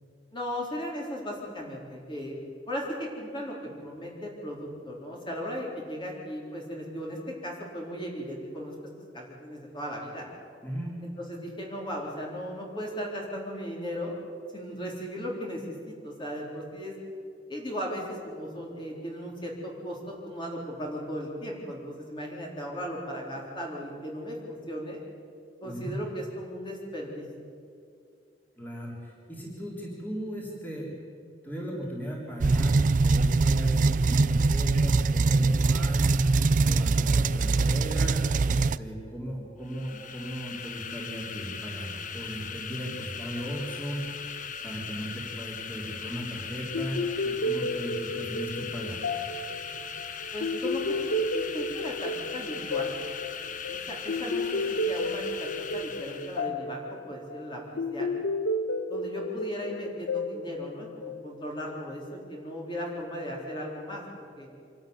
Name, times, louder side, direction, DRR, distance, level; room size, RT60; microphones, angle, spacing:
voice 1, 0.3-2.3 2.7-3.5 3.8-7.2 7.4-8.7 9.1-10.3 11.0-14.2 14.5-16.9 17.5-25.0 25.6-27.3 50.3-52.9 53.7-57.6 57.9-58.1 58.9-64.5, equal, 25° left, -2 dB, 3.9 m, -37 dB
voice 2, 10.6-11.0 25.6-26.0 28.6-30.9 31.4-36.1 36.6-44.1 44.6-49.0, equal, 10° left, -3 dB, 3.7 m, -37 dB
sound 1, 32.4-38.8, right 3 dB, 45° right, 0.4 m, -23 dB
sound 2, 39.6-56.5, left 6 dB, 45° left, 1.1 m, -39 dB
sound 3, 46.7-61.5, left 2 dB, 85° left, 1.2 m, -32 dB
26.0 x 13.0 x 9.5 m, 2.4 s
head